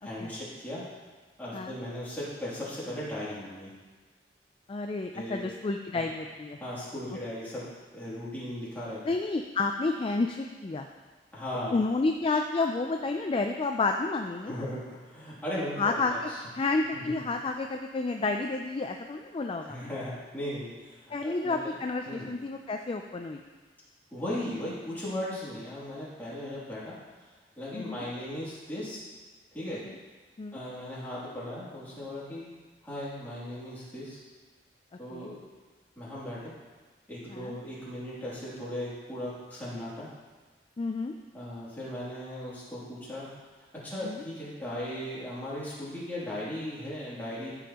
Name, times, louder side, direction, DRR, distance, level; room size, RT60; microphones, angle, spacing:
voice 1, 0.0-0.8 1.4-3.7 5.1-5.4 5.9-6.0 6.6-7.7 7.9-9.0 11.3-11.7 14.4-16.3 16.9-17.0 19.7-21.7 22.0-22.3 24.1-27.0 27.6-29.0 29.5-29.8 30.5-32.5 32.8-34.2 35.0-35.4 36.0-36.5 37.1-40.1 41.3-43.3 43.8-47.5, left 1 dB, 10° left, -9 dB, 2.7 m, -37 dB
voice 2, 4.7-6.6 9.0-10.9 11.7-14.6 15.8-16.3 16.6-19.8 21.1-23.4 27.7-28.1 29.9-30.0 30.4-30.6 35.1-35.3 37.3-37.6 40.8-41.1 44.0-44.2, left 3 dB, 30° left, 4 dB, 0.3 m, -30 dB
14.0 x 5.4 x 2.9 m, 1.4 s
head